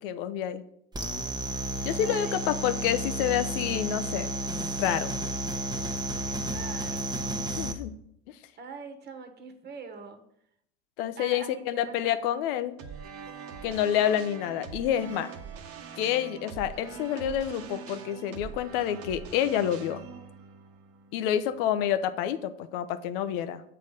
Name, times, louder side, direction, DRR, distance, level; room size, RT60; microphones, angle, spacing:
voice 1, 0.0-0.6 1.8-4.3 4.8-5.1 7.4-8.0 11.0-12.7 13.6-15.3 16.0-20.0 21.1-23.6, left 10 dB, 65° left, 12 dB, 0.8 m, -28 dB
sound 1, 0.9-7.7, right 1 dB, 15° right, 1.0 m, -32 dB
voice 2, 2.0-2.5 6.2-7.1 8.6-10.2 11.2-12.3, right 5 dB, 35° right, 7 dB, 1.4 m, -43 dB
sound 2, 12.8-21.9, right 6 dB, 50° right, 1.2 m, -43 dB
7.6 x 4.0 x 6.6 m, 0.72 s
hypercardioid pair, 80°, 29 cm